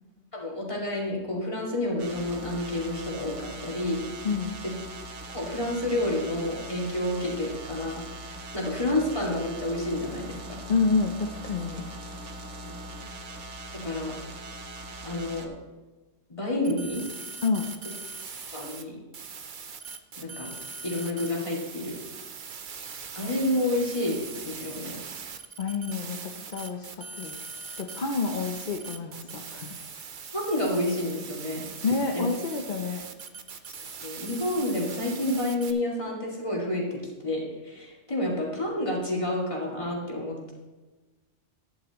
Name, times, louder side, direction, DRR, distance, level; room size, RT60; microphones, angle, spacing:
voice 1, 0.3-4.0 5.3-10.6 12.6-12.7 13.8-14.1 15.0-15.5 16.3-17.0 18.5-19.0 20.2-20.5 20.8-22.0 23.2-25.0 30.3-31.6 32.1-32.2 34.0-40.5, left 1 dB, 25° left, -4 dB, 2.6 m, -29 dB
sound 1, 2.0-15.5, right 2 dB, 90° right, 1.4 m, -41 dB
voice 2, 4.2-4.6 10.7-11.8 17.4-17.7 25.6-27.4 27.8-29.8 31.8-33.0, left 4 dB, 45° left, 3 dB, 0.9 m, -28 dB
sound 2, 16.6-18.8 19.1-35.7, right 5 dB, 50° right, 0.8 m, -41 dB
12.5 x 10.5 x 3.0 m, 1.2 s
omnidirectional pair, 1.2 m